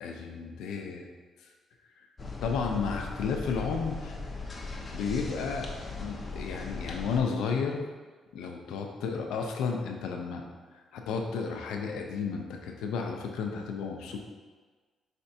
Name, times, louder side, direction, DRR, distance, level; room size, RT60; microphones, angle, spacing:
voice 1, 0.0-1.1 2.4-4.2 4.9-5.7 6.0-7.8 8.3-10.4 10.9-14.2, left 5 dB, 90° left, 2 dB, 0.5 m, -32 dB
sound 1, 2.2-7.2, left 3 dB, 30° left, 0.7 m, -38 dB
5.0 x 3.4 x 2.7 m, 1.4 s
cardioid pair, 90°, 0 cm